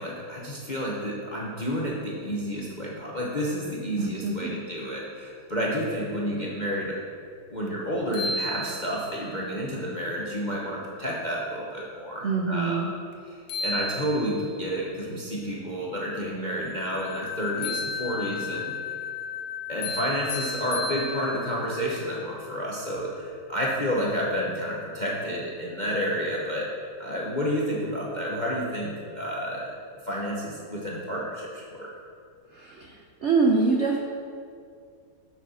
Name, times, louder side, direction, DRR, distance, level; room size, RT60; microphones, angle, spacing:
voice 1, 0.0-7.0 7.5-12.8 13.3-18.7 19.7-26.7 27.0-29.7 30.0-31.9, equal, 40° left, -4 dB, 0.6 m, -30 dB
voice 2, 4.0-4.5 12.2-12.9 32.5-32.9 33.2-34.0, right 4 dB, 70° right, 0 dB, 0.6 m, -24 dB
sound 1, 7.7-7.8 8.1-9.2 13.1-13.2 13.5-14.6 17.6-18.5 19.8-21.6, left 1 dB, 60° left, 1.3 m, -34 dB
sound 2, 16.5-22.9, left 9 dB, 25° left, 1.5 m, -37 dB
6.8 x 6.4 x 5.6 m, 2.3 s
omnidirectional pair, 2.1 m